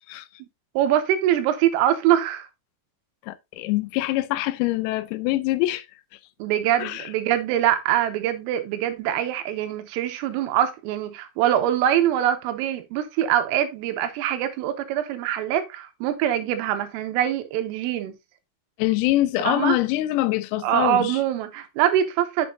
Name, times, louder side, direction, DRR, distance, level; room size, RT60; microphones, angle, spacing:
voice 1, 0.8-2.5 6.4-18.1 19.5-19.8 20.6-22.5, right 11 dB, 85° right, 3.6 m, -23 dB
voice 2, 3.3-5.9 6.8-7.1 18.8-21.2, left 17 dB, 90° left, 3.4 m, -24 dB
8.8 x 7.5 x 2.6 m
omnidirectional pair, 6.0 m